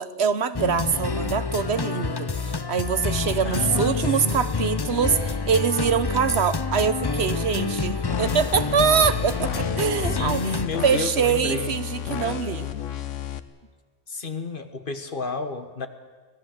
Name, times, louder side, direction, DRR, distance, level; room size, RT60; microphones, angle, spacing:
voice 1, 0.0-5.2 5.5-10.4 10.8-12.7, right 6 dB, 60° right, 13 dB, 1.1 m, -24 dB
sound 1, 0.5-10.7, left 4 dB, 30° left, 0.5 m, -28 dB
voice 2, 3.4-4.4 10.0-11.8 14.1-15.9, left 4 dB, 45° left, 9 dB, 1.5 m, -31 dB
sound 2, 8.1-13.4, left 9 dB, 80° left, 1.3 m, -32 dB
24.5 x 17.5 x 7.8 m, 1.4 s
omnidirectional pair, 1.3 m